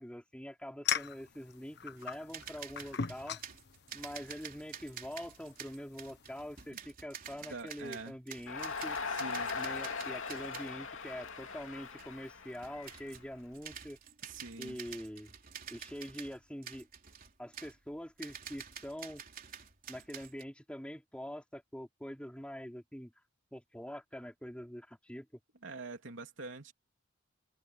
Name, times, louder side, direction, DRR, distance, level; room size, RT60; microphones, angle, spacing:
voice 1, 0.0-3.4 3.9-9.0 9.5-14.0 14.6-15.3 15.7-16.9 17.4-19.2 19.9-23.1 23.5-25.3, equal, 5° left, 4.4 m, -44 dB
sound 1, 0.8-6.7, left 8 dB, 60° left, 1.2 m, -41 dB
sound 2, 2.0-10.8 11.1-11.2 11.4-11.7 12.0-12.1 12.5-13.3 13.5-20.4, right 8 dB, 45° right, 3.6 m, -49 dB
voice 2, 7.5-8.2 9.1-9.5 14.2-14.8 25.6-26.7, right 3 dB, 70° right, 3.4 m, -45 dB
Crowd, 8.5-13.7, left 5 dB, 90° left, 2.7 m, -40 dB
head